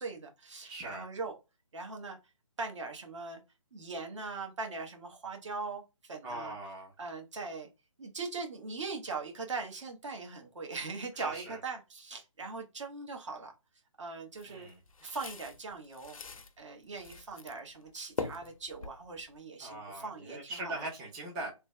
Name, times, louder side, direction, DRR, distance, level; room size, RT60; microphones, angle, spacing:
voice 1, 0.0-1.3 1.7-2.2 2.6-3.4 3.7-6.5 7.0-7.7 8.0-13.5 14.0-14.7 15.0-16.2 16.6-20.8, right 4 dB, 60° right, 1.2 m, -40 dB
voice 2, 0.6-1.1 6.2-6.9 11.2-11.6 14.4-14.8 19.6-21.5, right 2 dB, 10° right, 0.5 m, -41 dB
sound 1, 14.4-16.5 16.9-17.6 17.9-19.4, left 4 dB, 80° left, 0.6 m, -42 dB
3.2 x 2.2 x 3.0 m
figure-of-eight pair, 155°, 17 cm